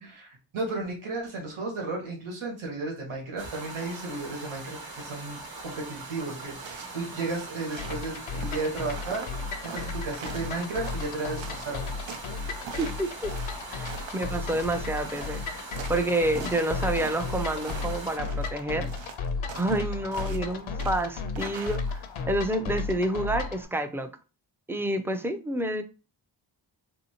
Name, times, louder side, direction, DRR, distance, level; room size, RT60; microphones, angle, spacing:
voice 1, 0.0-11.9, right 3 dB, 90° right, 1.3 m, -34 dB
sound 1, 3.4-18.2, right 3 dB, 50° right, 1.0 m, -42 dB
sound 2, 6.4-22.2, right 6 dB, 70° right, 0.6 m, -44 dB
sound 3, 7.8-23.6, left 4 dB, 85° left, 0.6 m, -35 dB
voice 2, 12.8-13.3 13.7-18.9 19.5-24.1 24.7-25.8, right 1 dB, 5° right, 0.3 m, -29 dB
3.4 x 2.7 x 2.8 m
wide cardioid pair, 70°, 47 cm